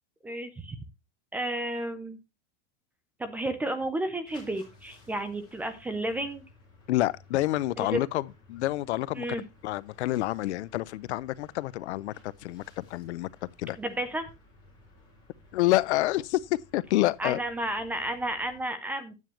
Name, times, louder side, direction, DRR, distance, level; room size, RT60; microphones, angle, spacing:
voice 1, 0.2-0.8 1.3-2.2 3.2-6.4 7.8-8.0 9.2-9.4 13.8-14.3 17.2-19.1, right 1 dB, 5° right, 0.4 m, -32 dB
sound 1, 4.2-18.6, left 2 dB, 15° left, 6.2 m, -56 dB
voice 2, 6.9-9.3 9.6-13.3 13.6-13.8 15.5-17.4, left 16 dB, 85° left, 0.7 m, -28 dB
9.3 x 9.0 x 3.0 m
supercardioid pair, 170°, 33 cm